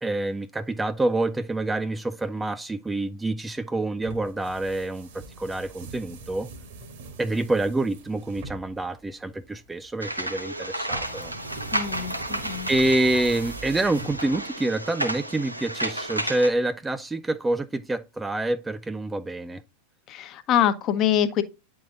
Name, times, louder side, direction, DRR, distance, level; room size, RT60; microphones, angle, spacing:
voice 1, 0.0-6.5 7.2-11.3 12.7-19.6, right 2 dB, 10° right, 0.3 m, -27 dB
sound 1, 4.0-14.6, right 3 dB, 50° right, 1.5 m, -42 dB
sound 2, 10.0-16.5, right 1 dB, 85° right, 1.2 m, -32 dB
voice 2, 11.7-12.7 20.1-21.4, left 10 dB, 35° left, 0.9 m, -24 dB
9.4 x 3.9 x 3.8 m
figure-of-eight pair, 90°, 0 cm